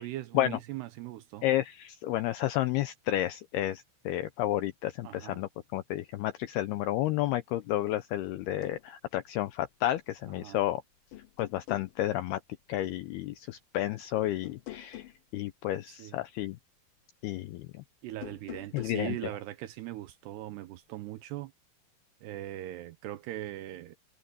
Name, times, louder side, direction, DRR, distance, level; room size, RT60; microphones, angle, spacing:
voice 1, 0.0-1.5 5.0-5.4 10.4-10.7 15.9-16.2 18.0-21.5 22.2-24.0, right 14 dB, 80° right, 2.6 m, -40 dB
voice 2, 1.4-10.8 11.4-12.4 12.7-15.0 15.3-16.6 17.2-17.7 18.7-19.2, left 14 dB, 85° left, 2.3 m, -31 dB
sound 1, 8.4-8.8 10.4-10.7 11.1-11.9 14.4-15.2 18.1-19.1, left 15 dB, 70° left, 2.0 m, -45 dB
omnidirectional pair, 5.4 m